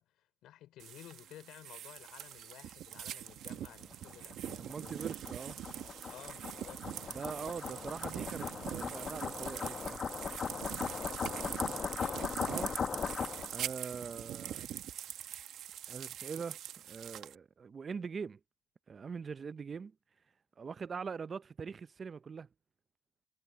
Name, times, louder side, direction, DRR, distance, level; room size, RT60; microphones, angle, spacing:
voice 1, 0.0-5.2 6.1-6.8 11.0-12.5, left 13 dB, 85° left, 4.8 m, -54 dB
sound 1, 0.8-17.4, right 11 dB, 80° right, 1.1 m, -43 dB
sound 2, 3.7-13.6, left 6 dB, 45° left, 1.0 m, -39 dB
voice 2, 4.6-5.6 7.1-10.1 12.4-12.7 13.5-14.7 15.9-16.6 16.9-18.4 18.9-19.9 20.6-22.5, right 5 dB, 40° right, 0.5 m, -42 dB
cardioid pair, 90°, 0 cm